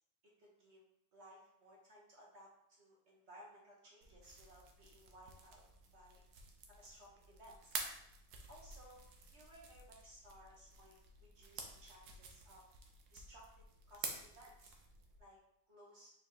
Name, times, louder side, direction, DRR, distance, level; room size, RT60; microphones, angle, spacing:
voice 1, 0.4-0.8 1.1-5.6 5.9-6.2 6.7-7.8 8.5-9.1 9.3-11.0 11.2-12.6 13.1-14.7 15.2-15.4 15.7-16.1, equal, 50° right, -2 dB, 0.9 m, -60 dB
sound 1, 4.0-15.2, right 4 dB, 70° right, 1.2 m, -51 dB
4.5 x 4.3 x 2.7 m, 0.80 s
omnidirectional pair, 1.9 m